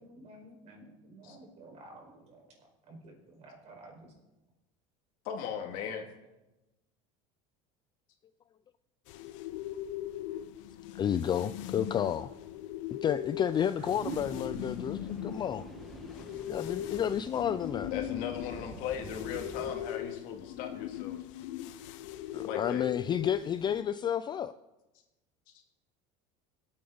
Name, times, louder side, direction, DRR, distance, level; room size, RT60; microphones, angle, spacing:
voice 1, 0.0-2.5 2.9-4.1, right 1 dB, 45° right, 1 dB, 4.9 m, -52 dB
voice 2, 5.2-6.1 17.9-21.2 22.4-22.8, left 8 dB, 65° left, 2 dB, 2.3 m, -38 dB
sound 1, 9.1-23.8, left 12 dB, 80° left, 0.8 m, -40 dB
voice 3, 10.9-12.3 13.0-15.7 16.5-17.9 22.3-24.5, left 9 dB, 30° left, 12 dB, 0.4 m, -31 dB
sound 2, 13.8-18.7, right 4 dB, 75° right, 3.9 m, -47 dB
sound 3, 14.0-19.8, left 1 dB, ahead, 2.0 m, -48 dB
22.5 x 8.8 x 4.0 m, 1.0 s
supercardioid pair, 125°, 16 cm